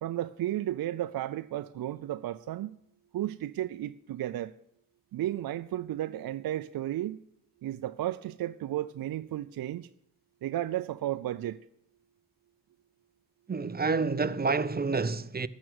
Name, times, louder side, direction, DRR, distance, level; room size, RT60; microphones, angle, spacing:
voice 1, 0.0-2.8 3.1-4.5 5.1-7.2 7.6-9.9 10.4-11.6, right 13 dB, 55° right, 0.6 m, -33 dB
voice 2, 13.5-15.5, right 4 dB, 20° right, 0.7 m, -28 dB
13.5 x 6.3 x 9.2 m
supercardioid pair, 50°, 43 cm